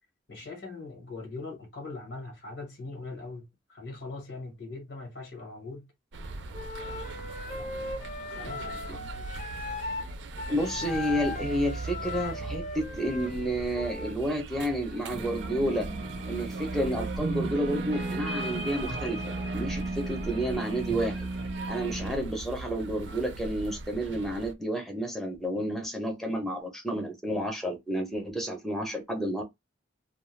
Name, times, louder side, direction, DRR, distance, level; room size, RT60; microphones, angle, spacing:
voice 1, 0.3-5.9 7.5-8.0 8.3-9.1, left 3 dB, 80° left, 1.3 m, -41 dB
sound 1, 6.1-24.5, right 3 dB, 75° right, 0.4 m, -40 dB
Wind instrument woodwind instrument, 6.5-10.1 10.4-14.2, left 3 dB, 40° left, 0.6 m, -38 dB
voice 2, 10.5-15.9 16.3-21.2 21.7-29.4, right 1 dB, ahead, 0.6 m, -30 dB
sound 2, 15.1-22.1, right 2 dB, 35° right, 0.6 m, -35 dB
2.3 x 2.2 x 3.1 m
head